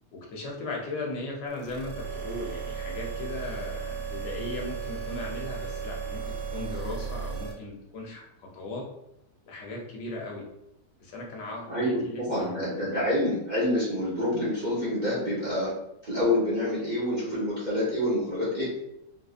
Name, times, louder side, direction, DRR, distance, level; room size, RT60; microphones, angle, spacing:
voice 1, 0.1-8.8 9.5-10.4 11.0-12.8, left 2 dB, 80° left, -1 dB, 1.4 m, -37 dB
sound 1, 1.5-7.5, right 5 dB, 70° right, 1.1 m, -35 dB
voice 2, 11.7-15.7 16.0-18.8, left 1 dB, 35° right, -8 dB, 0.8 m, -27 dB
3.9 x 2.6 x 2.4 m, 0.81 s
omnidirectional pair, 1.9 m